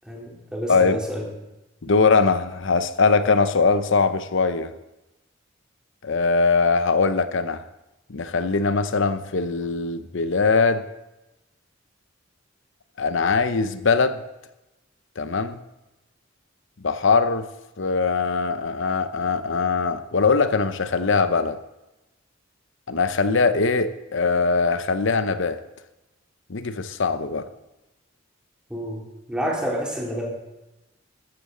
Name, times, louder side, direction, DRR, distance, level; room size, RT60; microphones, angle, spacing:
voice 1, 0.0-1.3 28.7-29.0 29.3-30.3, equal, 5° right, -3 dB, 3.3 m, -29 dB
voice 2, 0.7-1.0 1.8-4.7 6.0-7.6 8.1-10.8 13.0-14.2 15.2-15.6 16.8-17.5 17.8-21.6 22.9-25.6 26.5-27.5, left 4 dB, 65° left, 11 dB, 0.8 m, -21 dB
14.0 x 13.5 x 3.9 m, 0.98 s
head